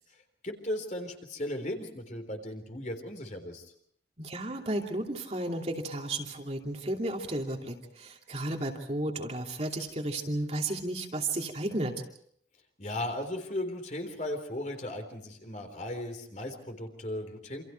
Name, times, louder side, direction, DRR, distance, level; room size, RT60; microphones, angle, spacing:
voice 1, 0.4-3.7 12.8-17.6, left 1 dB, 40° left, 5 dB, 3.8 m, -36 dB
voice 2, 4.2-12.0, right 1 dB, 35° right, 1 dB, 2.7 m, -33 dB
28.5 x 27.0 x 4.6 m, 0.66 s
head